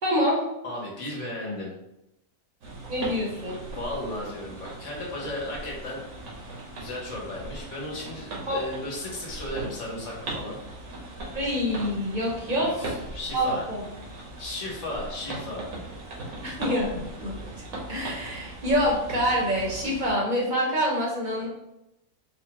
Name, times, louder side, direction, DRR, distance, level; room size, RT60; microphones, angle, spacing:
voice 1, 0.0-0.4 2.9-3.6 8.5-8.6 11.3-12.7 13.3-13.8 16.4-17.3 17.9-21.5, equal, 40° right, -3 dB, 0.9 m, -26 dB
voice 2, 0.6-1.7 3.7-6.1 6.7-10.6 12.6-13.6 14.4-15.7, left 1 dB, 60° left, -3 dB, 1.5 m, -35 dB
sound 1, 2.6-20.1, right 2 dB, 75° right, 1.4 m, -39 dB
4.4 x 2.4 x 3.0 m, 0.86 s
omnidirectional pair, 1.5 m